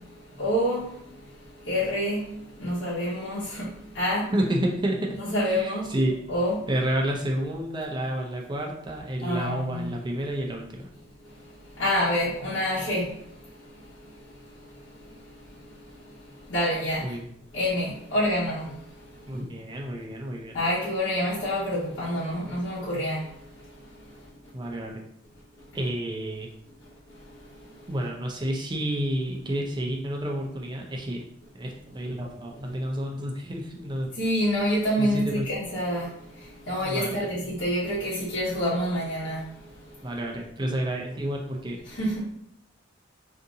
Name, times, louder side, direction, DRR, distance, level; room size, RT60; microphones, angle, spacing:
voice 1, 0.4-0.9 1.7-2.2 2.6-3.7 3.9-4.3 5.1-5.9 6.3-6.6 9.2-9.9 11.8-13.1 16.5-17.0 17.5-18.7 20.5-23.2 34.2-36.1 36.7-39.4 42.0-42.2, equal, 75° left, -9 dB, 1.0 m, -27 dB
voice 2, 4.3-5.1 5.4-6.1 6.7-10.7 17.0-17.2 19.3-20.6 24.5-24.9 25.7-26.5 27.9-31.2 31.5-34.1 35.0-35.4 36.8-37.3 40.0-41.8, right 1 dB, 25° right, 0 dB, 0.5 m, -30 dB
2.7 x 2.5 x 3.7 m, 0.74 s
head